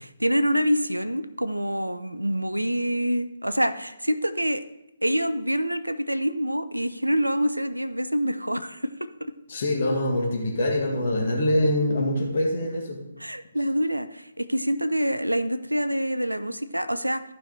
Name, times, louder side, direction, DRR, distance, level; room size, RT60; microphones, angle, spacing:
voice 1, 0.0-4.6 5.0-8.9 9.2-9.3 13.2-17.2, equal, 85° right, 12 dB, 0.6 m, -26 dB
voice 2, 9.5-13.0, left 1 dB, 45° left, 0 dB, 2.1 m, -24 dB
14.5 x 5.5 x 3.3 m, 0.93 s
figure-of-eight pair, 140°, 0 cm